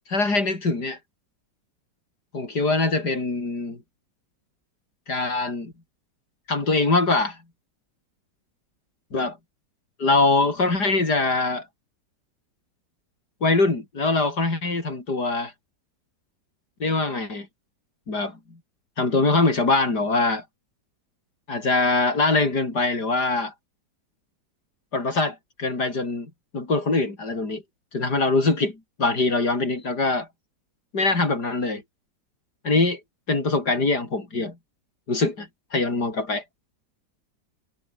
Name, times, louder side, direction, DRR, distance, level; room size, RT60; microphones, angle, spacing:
voice 1, 0.1-1.0 2.3-3.8 5.1-5.7 6.5-7.4 9.1-9.4 10.0-11.7 13.4-15.5 16.8-17.5 18.1-18.4 19.0-20.4 21.5-23.5 24.9-27.6 27.9-30.3 30.9-31.8 32.6-33.0 33.3-34.6 35.1-36.4, left 3 dB, 65° left, 5.8 m, -23 dB
omnidirectional pair, 1.9 m